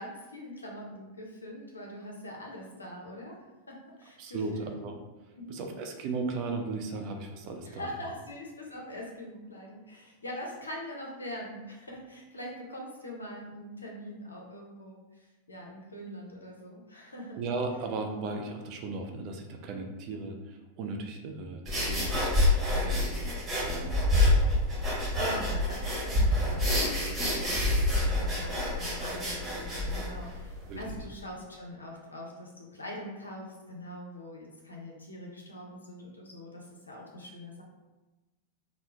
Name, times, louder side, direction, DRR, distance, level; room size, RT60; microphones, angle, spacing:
voice 1, 0.0-3.4 3.7-4.7 5.4-5.6 7.6-17.4 24.9-37.6, left 1 dB, 80° left, -1 dB, 0.7 m, -43 dB
voice 2, 4.2-4.9 5.5-7.9 17.4-24.3 30.7-30.8, right 3 dB, 40° right, 4 dB, 0.4 m, -36 dB
sound 1, 21.7-30.9, left 1 dB, 10° right, 1.1 m, -27 dB
3.0 x 2.0 x 3.3 m, 1.1 s
figure-of-eight pair, 90°, 0 cm